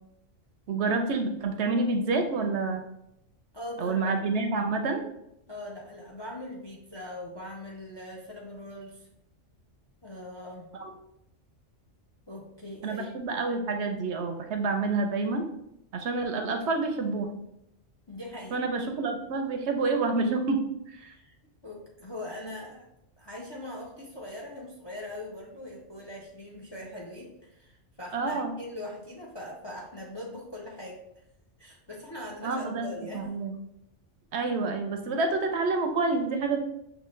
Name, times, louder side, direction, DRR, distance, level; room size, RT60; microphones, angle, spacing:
voice 1, 0.7-2.8 3.8-5.0 10.7-10.9 12.8-15.5 15.9-17.3 18.5-21.1 28.1-28.5 32.4-32.9 33.1-33.6 34.3-36.6, right 3 dB, 70° right, 6 dB, 0.8 m, -28 dB
voice 2, 3.5-4.1 5.5-9.1 10.0-10.7 12.3-13.2 18.1-18.6 21.0-21.4 21.6-22.9 23.2-31.2 31.6-33.2, left 1 dB, 30° left, -2 dB, 0.5 m, -41 dB
6.2 x 2.5 x 3.1 m, 0.82 s
omnidirectional pair, 1.3 m